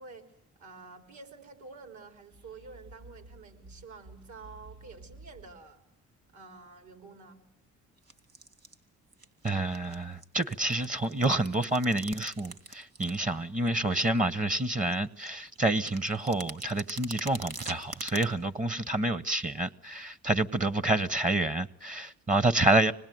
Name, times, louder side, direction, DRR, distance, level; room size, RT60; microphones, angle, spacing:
voice 1, 0.0-5.8 6.3-7.5, right 4 dB, 70° right, 3.8 m, -49 dB
sound 1, 2.1-5.7, right 2 dB, 90° right, 6.3 m, -52 dB
sound 2, 8.0-8.7 9.1-9.9 10.2-13.2 13.6-14.2 14.6-14.7 14.9-18.3, right 4 dB, 55° right, 3.0 m, -44 dB
voice 2, 9.4-22.9, right 2 dB, 25° right, 0.9 m, -28 dB
26.5 x 19.5 x 9.3 m
cardioid pair, 90°, 30 cm